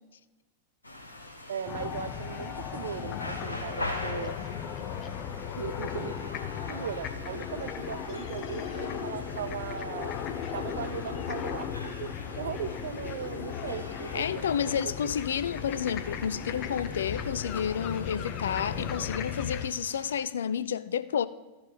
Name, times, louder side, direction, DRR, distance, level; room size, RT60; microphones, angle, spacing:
sound 1, 0.8-20.2, left 1 dB, 80° left, 1.4 m, -44 dB
voice 1, 1.5-4.4 5.6-6.1 6.7-10.1 10.5-15.1, right 8 dB, 60° right, 0.5 m, -38 dB
sound 2, 1.7-19.7, left 8 dB, 35° left, 1.0 m, -36 dB
voice 2, 14.1-21.3, left 8 dB, 65° left, 0.5 m, -30 dB
13.0 x 6.6 x 7.2 m
figure-of-eight pair, 90°, 0 cm